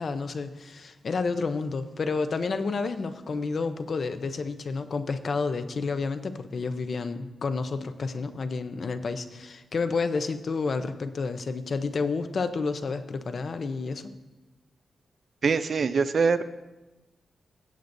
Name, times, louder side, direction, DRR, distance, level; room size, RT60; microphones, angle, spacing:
voice 1, 0.0-14.1, left 4 dB, 45° left, 10 dB, 0.6 m, -30 dB
voice 2, 15.4-16.4, right 5 dB, 50° right, 12 dB, 0.4 m, -23 dB
16.5 x 8.0 x 2.6 m, 1.1 s
wide cardioid pair, 160°, 0 cm